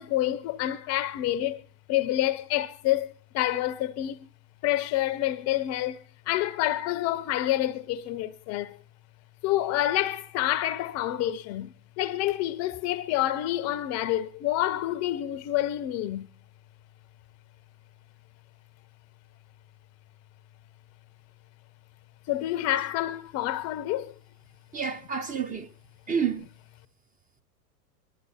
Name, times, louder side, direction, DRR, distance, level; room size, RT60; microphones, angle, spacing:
voice 1, 0.0-1.6 1.9-4.3 4.6-6.0 6.3-8.8 9.4-16.3 22.3-24.1, left 14 dB, 30° left, 0.7 m, -28 dB
voice 2, 24.7-25.7 26.1-26.5, right 6 dB, 15° right, 0.8 m, -29 dB
20.5 x 12.0 x 4.3 m
figure-of-eight pair, 95°, 50 cm